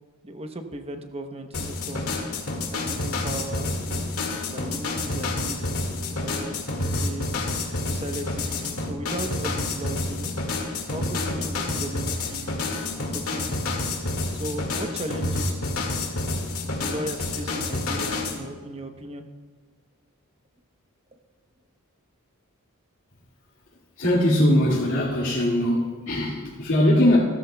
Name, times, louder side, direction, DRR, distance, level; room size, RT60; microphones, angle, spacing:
voice 1, 0.2-2.1 2.7-4.1 4.5-7.4 7.9-10.3 10.9-12.5 12.9-13.6 14.3-16.0 16.7-19.2, right 1 dB, 30° right, 7 dB, 0.8 m, -37 dB
sound 1, 1.5-18.4, left 2 dB, 85° left, 1.9 m, -29 dB
voice 2, 24.0-27.2, left 1 dB, 60° left, -6 dB, 2.3 m, -21 dB
16.5 x 13.5 x 2.2 m, 1.6 s
head